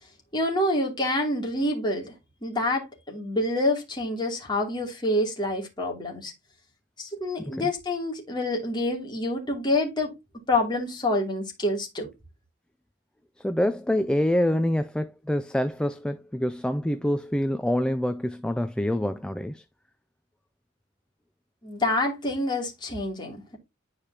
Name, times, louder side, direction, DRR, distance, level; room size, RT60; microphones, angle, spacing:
voice 1, 0.3-2.1 2.4-6.3 7.0-10.1 10.5-12.1 21.6-23.6, left 1 dB, 20° left, 2.7 m, -27 dB
voice 2, 13.4-19.6, left 1 dB, 5° left, 0.3 m, -26 dB
10.0 x 4.9 x 2.8 m
head